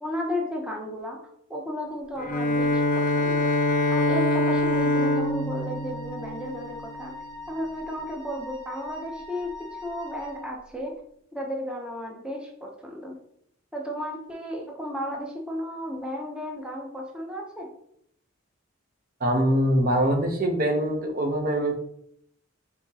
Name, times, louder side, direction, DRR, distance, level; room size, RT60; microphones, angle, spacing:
voice 1, 0.0-1.2 1.5-3.5 3.9-7.1 7.5-10.9 11.3-13.2 13.7-17.7, equal, 5° right, -1 dB, 0.6 m, -34 dB
Bowed string instrument, 2.2-7.1, left 2 dB, 40° left, 0.4 m, -24 dB
Wind instrument woodwind instrument, 4.4-10.5, left 2 dB, 85° right, 1.4 m, -42 dB
voice 2, 19.2-21.8, right 1 dB, 45° right, 4 dB, 0.7 m, -23 dB
4.2 x 4.0 x 2.7 m, 0.69 s
head